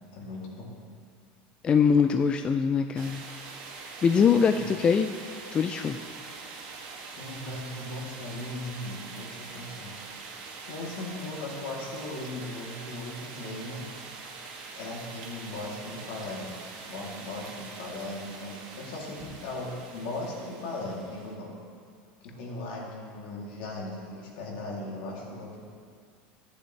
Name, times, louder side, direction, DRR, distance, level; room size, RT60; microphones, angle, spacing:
voice 1, 0.1-0.8 4.5-4.7 7.1-9.9 10.7-13.8 14.7-16.6 16.8-21.5 22.2-25.6, left 2 dB, 70° left, -3 dB, 2.8 m, -38 dB
voice 2, 1.6-3.2 4.0-5.1 5.5-6.0, left 6 dB, 20° left, 7 dB, 0.3 m, -23 dB
sound 1, 3.0-21.3, right 4 dB, 80° right, 2.0 m, -43 dB
13.5 x 10.0 x 3.3 m, 2.2 s
supercardioid pair, 155°, 4 cm